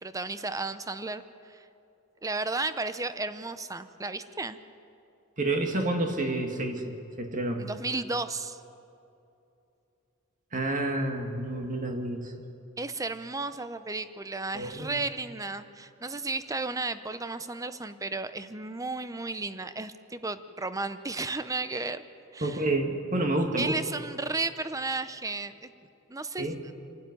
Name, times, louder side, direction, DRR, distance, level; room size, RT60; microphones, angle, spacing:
voice 1, 0.0-1.2 1.5-1.6 2.2-4.6 7.6-8.6 12.8-22.0 22.3-22.6 23.6-25.7 26.1-26.5, right 3 dB, 15° right, 11 dB, 0.7 m, -33 dB
voice 2, 5.4-7.7 10.5-12.3 14.5-15.0 22.4-23.7 26.4-26.6, right 2 dB, 40° right, 3 dB, 1.9 m, -29 dB
27.5 x 12.0 x 9.6 m, 2.7 s
head